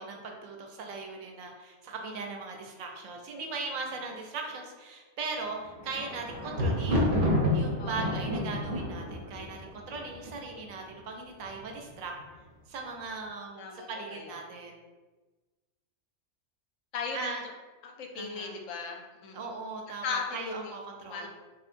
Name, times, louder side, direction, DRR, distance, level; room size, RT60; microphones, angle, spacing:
voice 1, 0.0-12.1 12.7-14.8 17.1-17.4 18.1-18.6 19.3-21.3, right 4 dB, 80° right, 2 dB, 1.0 m, -39 dB
Thunder, 5.5-10.7 11.4-11.9 12.2-12.3, left 1 dB, 50° right, 0.7 m, -29 dB
voice 2, 7.8-8.2 13.5-14.4 16.9-17.4 17.8-19.5 20.0-20.7 21.1-21.3, left 5 dB, 70° left, 2 dB, 0.9 m, -37 dB
3.9 x 2.7 x 2.5 m, 1.2 s
omnidirectional pair, 1.4 m